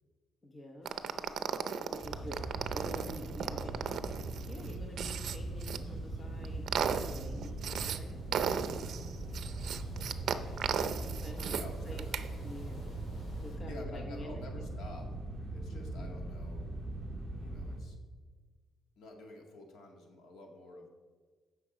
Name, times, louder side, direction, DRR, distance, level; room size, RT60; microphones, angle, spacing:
voice 1, 0.4-0.9 1.9-2.4 2.7-3.8 4.2-8.2 10.9-11.6 11.8-12.1 12.4-12.9 13.4-14.6 15.7-16.2, equal, 25° left, 3 dB, 1.0 m, -48 dB
sound 1, 0.8-13.6, left 1 dB, 45° left, 4.0 m, -57 dB
sound 2, 0.9-5.8 6.3-8.0 8.3-11.6 12.0-12.3, right 7 dB, 55° right, 0.6 m, -35 dB
sound 3, 2.0-17.8, right 2 dB, ahead, 2.7 m, -40 dB
voice 2, 11.5-12.2 13.6-15.1 15.4-16.7 17.3-18.0 19.0-20.9, left 2 dB, 70° left, 2 dB, 2.0 m, -50 dB
15.5 x 6.2 x 5.1 m, 1.4 s
cardioid pair, 160°, 0 cm